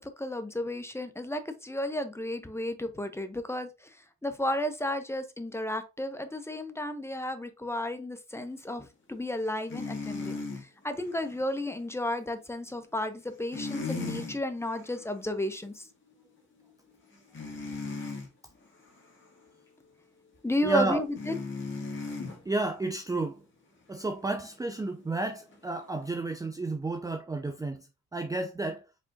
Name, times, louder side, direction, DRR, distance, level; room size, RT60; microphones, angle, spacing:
voice 1, 0.0-3.9 4.2-15.8 20.4-21.3, left 1 dB, 10° left, 0.8 m, -33 dB
sound 1, 9.7-10.6 13.5-14.4 14.8-15.0 17.3-18.3 21.2-22.4 25.5-25.6, left 3 dB, 40° left, 1.9 m, -36 dB
voice 2, 20.5-21.0 22.5-23.4 23.9-27.9 28.1-28.8, right 2 dB, 10° right, 0.5 m, -31 dB
5.1 x 3.4 x 2.7 m
cardioid pair, 90°, 30 cm